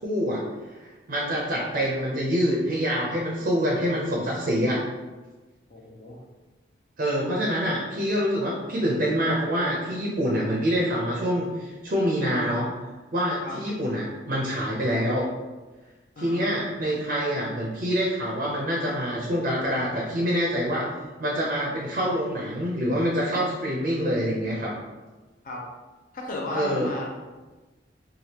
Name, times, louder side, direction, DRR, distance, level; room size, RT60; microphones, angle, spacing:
voice 1, 0.0-0.4 0.8-4.8 7.0-12.7 13.1-15.2 16.2-20.9 21.2-24.7 26.5-26.9, equal, 50° right, -4 dB, 0.5 m, -26 dB
voice 2, 5.7-6.2 13.4-13.6 16.2-16.8 25.4-25.6 26.1-27.1, left 2 dB, 45° left, -1 dB, 0.5 m, -34 dB
3.3 x 2.3 x 2.8 m, 1.2 s
head